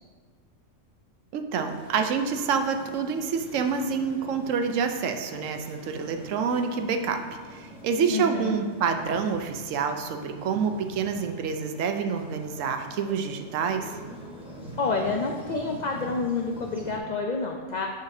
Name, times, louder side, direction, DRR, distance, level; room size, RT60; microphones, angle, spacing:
voice 1, 1.3-7.2 7.5-13.9, right 6 dB, 80° right, 6 dB, 1.0 m, -27 dB
sound 1, 1.6-17.0, equal, 5° right, 0.9 m, -45 dB
voice 2, 8.1-8.6 14.8-17.9, left 4 dB, 85° left, 1 dB, 0.4 m, -28 dB
10.0 x 4.1 x 2.6 m, 1.5 s
omnidirectional pair, 1.3 m